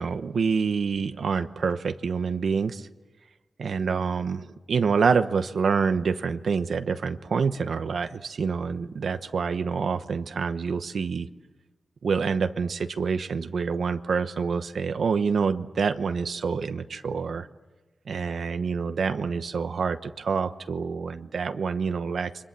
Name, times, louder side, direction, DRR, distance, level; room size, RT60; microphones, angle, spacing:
voice 1, 0.0-2.9 3.6-11.3 12.0-17.5 18.1-22.3, right 5 dB, 85° right, 9 dB, 1.0 m, -27 dB
29.5 x 24.5 x 7.6 m, 1.2 s
wide cardioid pair, 130°, 0 cm